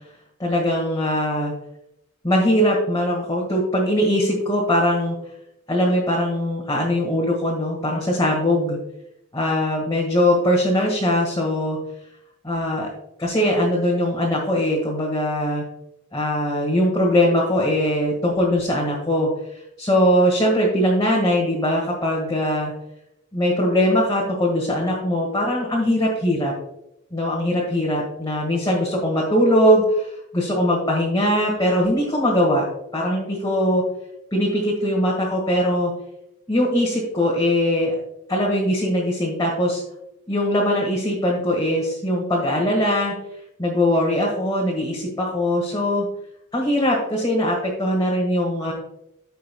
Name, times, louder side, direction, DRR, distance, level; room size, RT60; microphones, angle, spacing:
voice 1, 0.4-1.5 2.2-5.2 5.7-8.8 9.3-11.8 12.4-12.9 13.2-15.6 16.1-22.7 23.3-26.5 27.1-32.7 32.9-33.8 34.3-35.9 36.5-37.9 38.3-39.8 40.3-43.1 43.6-46.0 46.5-48.7, equal, 20° left, -4 dB, 1.7 m, -21 dB
15.5 x 5.6 x 2.3 m, 0.84 s
head